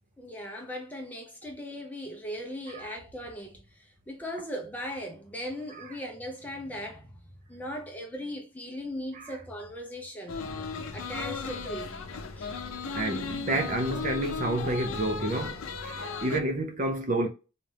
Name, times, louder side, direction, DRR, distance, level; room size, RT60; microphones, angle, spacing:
voice 1, 0.2-10.4 10.9-12.5, equal, 10° left, 0.6 m, -39 dB
sound 1, 10.3-16.4, left 5 dB, 85° left, 0.5 m, -36 dB
voice 2, 12.9-17.3, right 1 dB, 35° right, 0.5 m, -29 dB
4.1 x 2.4 x 3.2 m
head